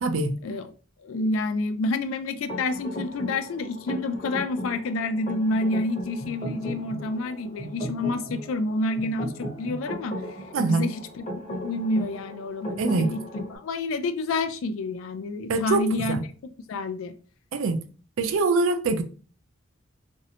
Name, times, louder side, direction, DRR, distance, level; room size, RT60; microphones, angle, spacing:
voice 1, 0.0-0.3 10.5-10.9 12.8-13.1 15.5-16.2 17.5-17.8 18.2-19.0, right 3 dB, 75° right, 0.4 m, -24 dB
voice 2, 1.0-10.2 10.7-11.2 11.6-16.2 16.7-17.1, left 2 dB, 75° left, 0.3 m, -28 dB
sound 1, 2.5-13.6, equal, 35° left, 0.8 m, -36 dB
2.6 x 2.1 x 2.7 m
head